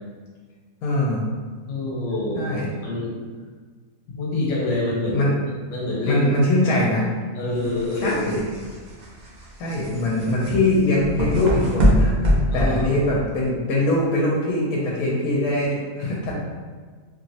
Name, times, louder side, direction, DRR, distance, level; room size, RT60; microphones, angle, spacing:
voice 1, 0.8-1.3 2.4-2.7 5.1-5.3 6.0-7.0 8.0-8.5 9.6-16.4, left 1 dB, 85° left, -4 dB, 1.1 m, -22 dB
voice 2, 1.7-2.6 2.8-3.1 4.1-5.3 5.7-6.2 6.6-6.8 7.3-8.2 12.5-13.0, left 2 dB, 65° left, -4 dB, 1.3 m, -26 dB
sound 1, 7.5-13.4, equal, 85° right, 0.4 m, -23 dB
2.9 x 2.9 x 2.7 m, 1.5 s
omnidirectional pair, 1.5 m